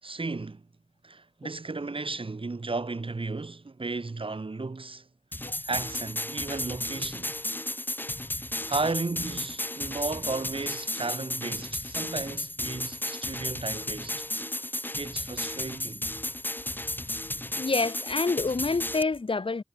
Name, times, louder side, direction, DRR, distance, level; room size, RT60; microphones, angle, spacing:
voice 1, 0.0-0.6 1.0-5.1 5.6-7.3 8.7-14.3 15.0-16.1, right 3 dB, 65° right, 4.3 m, -34 dB
sound 1, 5.3-19.0, left 1 dB, 20° left, 2.0 m, -34 dB
voice 2, 17.6-19.6, left 3 dB, 65° left, 1.2 m, -27 dB
wide cardioid pair, 65°, 10 cm